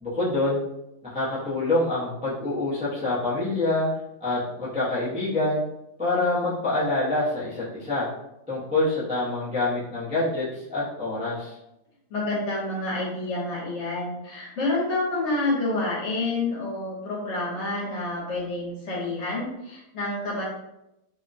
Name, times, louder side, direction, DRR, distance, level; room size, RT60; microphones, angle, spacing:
voice 1, 0.0-0.6 1.0-3.9 4.2-5.6 6.0-8.1 8.5-11.5, left 2 dB, 10° right, -10 dB, 0.3 m, -26 dB
voice 2, 12.1-20.4, left 2 dB, 55° left, -5 dB, 1.0 m, -28 dB
2.8 x 2.1 x 2.5 m, 0.88 s
omnidirectional pair, 1.6 m